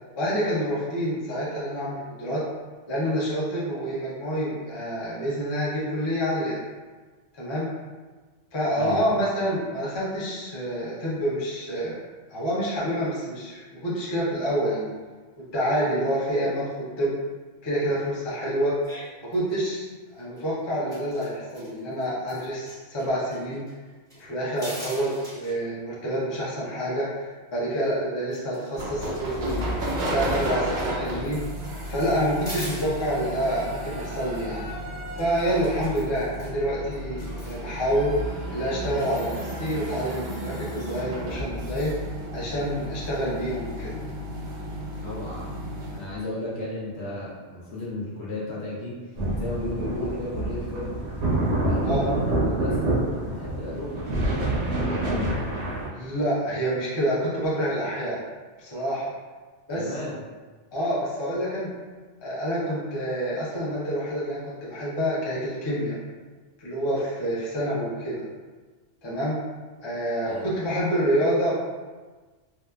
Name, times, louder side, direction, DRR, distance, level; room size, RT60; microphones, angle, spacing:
voice 1, 0.1-2.4 2.9-6.6 7.3-7.7 8.5-12.0 12.3-14.9 15.4-17.1 17.6-18.7 19.3-23.6 24.2-29.7 30.1-31.4 31.9-34.6 35.2-38.1 38.5-41.9 42.3-44.0 51.8-52.0 55.9-58.2 58.6-59.1 59.7-60.0 60.7-61.7 62.2-66.0 66.6-68.2 69.0-69.4 69.8-71.6, equal, 30° left, -7 dB, 0.5 m, -27 dB
sound 1, 18.8-19.0 19.3-19.8 20.2-20.4 20.7-22.7 23.0-23.1 23.3-24.2 24.6-25.5 27.9-28.0 28.3-32.9 35.1-36.5 36.9-37.7, equal, 5° left, 0.8 m, -43 dB
sound 2, 28.7-46.1, equal, 60° right, 0.5 m, -33 dB
voice 2, 45.0-48.9 49.4-51.0 51.6-55.2 59.7-60.2 70.2-70.5, left 2 dB, 65° left, -6 dB, 1.0 m, -34 dB
sound 3, 49.2-55.9, right 2 dB, 80° right, 0.9 m, -26 dB
2.8 x 2.2 x 2.3 m, 1.3 s
omnidirectional pair, 1.2 m